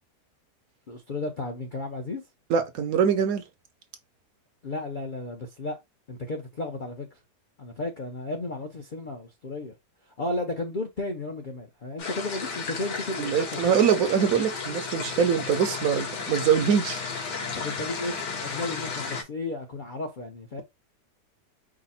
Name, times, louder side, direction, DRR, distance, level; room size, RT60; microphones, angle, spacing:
voice 1, 0.9-2.2 4.6-5.8 6.1-7.1 7.6-9.7 10.1-13.6 17.5-20.6, left 2 dB, 55° left, 0.5 m, -34 dB
voice 2, 2.5-3.4 13.2-17.0, right 7 dB, 65° right, 1.0 m, -23 dB
sound 1, 12.0-19.2, left 5 dB, 75° left, 1.8 m, -33 dB
5.0 x 2.1 x 4.1 m
omnidirectional pair, 1.8 m